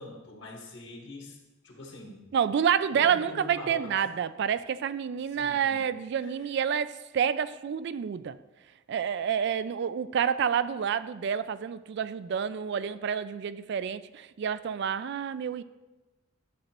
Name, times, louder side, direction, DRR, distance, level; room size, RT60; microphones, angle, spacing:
voice 1, 0.0-1.4 1.6-2.2 2.9-4.0 5.3-5.8 6.2-6.3, left 2 dB, 60° left, 0 dB, 1.7 m, -44 dB
voice 2, 2.3-8.4 8.9-15.6, right 8 dB, 60° right, 14 dB, 0.3 m, -28 dB
11.5 x 7.6 x 3.0 m, 1.1 s
head